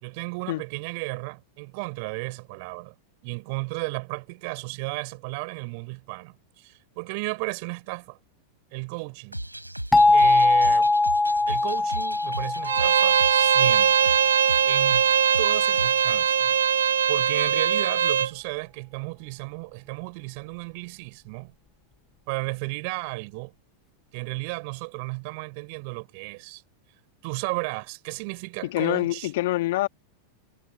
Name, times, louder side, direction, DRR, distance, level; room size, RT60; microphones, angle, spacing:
voice 1, 0.0-3.0 3.2-8.2 8.7-9.4 10.1-10.9 11.5-14.2 14.7-15.1 15.4-16.6 17.1-21.5 22.3-23.5 24.1-26.6 27.2-29.3, right 31 dB, 45° right, 5.5 m, -34 dB
sound 1, 9.3-16.1, right 1 dB, 85° right, 4.0 m, -36 dB
sound 2, 9.9-14.6, left 2 dB, 10° left, 1.3 m, -22 dB
Bowed string instrument, 12.6-18.3, right 8 dB, 65° right, 2.1 m, -21 dB
voice 2, 28.7-29.9, left 17 dB, 55° left, 2.0 m, -25 dB
figure-of-eight pair, 90°, 0 cm